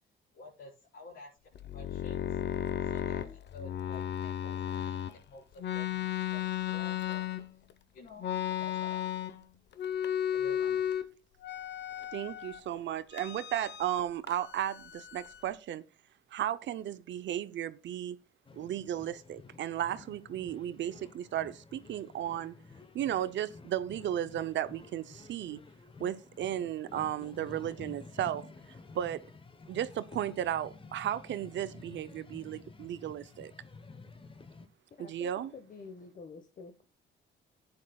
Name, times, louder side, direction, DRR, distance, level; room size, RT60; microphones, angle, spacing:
voice 1, 0.3-7.3 7.9-9.3 10.3-11.1, left 2 dB, 80° left, 4.9 m, -52 dB
sound 1, 1.6-5.1 5.6-7.7 8.2-9.5 9.7-11.1 11.4-12.6 13.1-14.0 14.3-15.5, left 10 dB, 60° left, 0.9 m, -34 dB
voice 2, 12.1-15.8 16.3-18.2 18.5-22.5 22.9-25.6 26.0-28.5 28.9-29.2 29.7-33.5 35.0-35.5, right 11 dB, 65° right, 0.6 m, -34 dB
sound 2, 18.5-34.7, left 3 dB, 25° left, 1.0 m, -51 dB
voice 3, 35.0-36.9, left 4 dB, 40° left, 1.3 m, -49 dB
15.0 x 9.7 x 2.3 m
cardioid pair, 90°, 20 cm